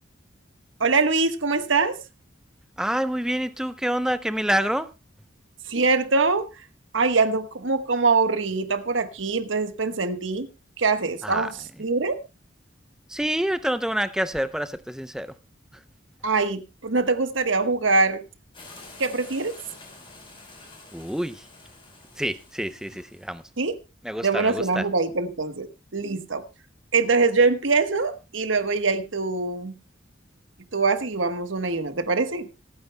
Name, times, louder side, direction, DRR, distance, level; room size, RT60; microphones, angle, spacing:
voice 1, 0.8-2.0 5.7-6.5 6.9-10.5 10.8-11.5 11.8-12.2 16.2-18.2 19.0-19.6 23.6-23.8 24.2-25.7 25.9-26.4 26.9-29.7 30.7-32.5, right 4 dB, 80° right, 1.3 m, -23 dB
voice 2, 2.8-4.9 11.2-11.5 13.1-15.3 20.9-21.5 22.2-23.4 24.0-24.9, equal, 5° right, 0.5 m, -27 dB
sound 1, 18.5-23.5, left 3 dB, 25° left, 4.2 m, -48 dB
26.0 x 9.2 x 2.2 m
head